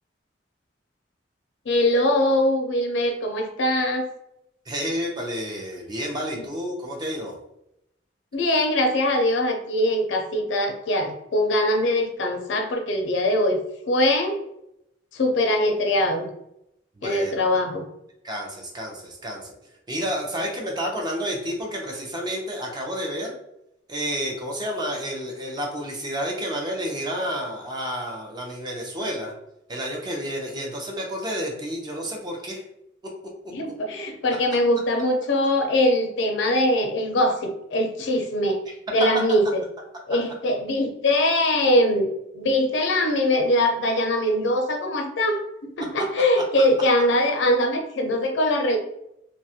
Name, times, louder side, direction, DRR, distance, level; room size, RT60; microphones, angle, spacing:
voice 1, 1.7-4.1 8.3-14.4 15.1-16.3 17.0-17.8 33.5-38.6 38.9-39.6 40.1-48.8, left 1 dB, 75° left, 4 dB, 0.4 m, -22 dB
voice 2, 4.7-7.4 17.0-17.6 18.2-19.5 19.9-23.4 23.9-29.3 29.7-32.6 33.0-33.1, equal, 25° right, 0 dB, 0.5 m, -30 dB
2.3 x 2.0 x 2.7 m, 0.81 s
head